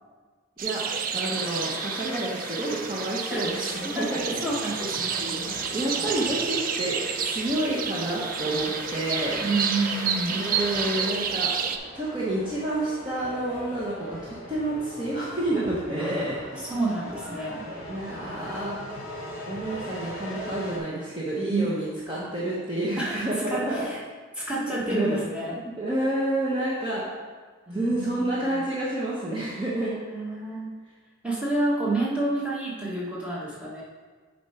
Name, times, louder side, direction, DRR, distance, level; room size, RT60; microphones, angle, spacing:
sound 1, 0.6-11.8, right 6 dB, 40° right, 0.3 m, -30 dB
voice 1, 1.1-4.3 5.2-9.4 10.3-11.5 11.9-16.6 17.7-18.8 19.5-23.9 24.6-25.2 25.6-27.0 27.7-29.9, right 1 dB, 20° right, -7 dB, 0.9 m, -29 dB
sound 2, 1.2-11.1, left 1 dB, 10° left, 0.6 m, -40 dB
sound 3, 3.3-20.8, equal, 40° left, 1.3 m, -41 dB
voice 2, 4.4-5.1 9.4-10.4 16.0-17.6 21.4-21.6 22.2-22.3 23.0-24.0 24.3-25.6 27.7-28.6 29.8-30.7 31.2-33.8, right 2 dB, 5° right, -6 dB, 1.3 m, -29 dB
7.2 x 4.4 x 4.3 m, 1.5 s
head